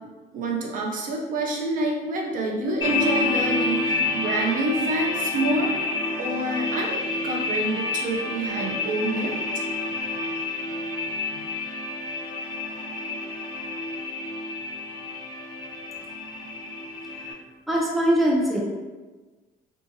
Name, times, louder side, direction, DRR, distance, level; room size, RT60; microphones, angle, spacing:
voice 1, 0.3-9.3, right 2 dB, 55° right, 0 dB, 0.5 m, -27 dB
sound 1, 2.8-17.3, left 3 dB, 25° left, 0.9 m, -29 dB
voice 2, 17.0-17.4 17.7-18.6, right 1 dB, ahead, -4 dB, 0.6 m, -23 dB
2.7 x 2.4 x 2.6 m, 1.3 s
cardioid pair, 110°, 17 cm